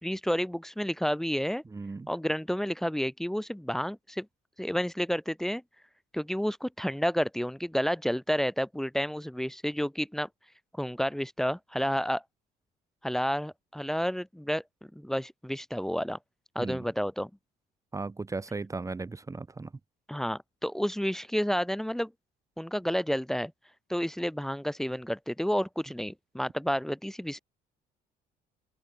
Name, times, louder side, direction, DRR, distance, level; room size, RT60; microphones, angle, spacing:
voice 1, 0.0-1.6 2.1-4.3 4.6-5.6 6.1-10.3 10.8-12.2 13.0-14.6 14.9-16.2 16.5-17.3 20.1-22.1 22.6-23.5 23.9-27.4, equal, ahead, 2.4 m, -30 dB
voice 2, 1.7-2.1 16.6-16.8 17.9-19.7, right 3 dB, 20° right, 2.5 m, -36 dB
open air
cardioid pair, 110°, 17 cm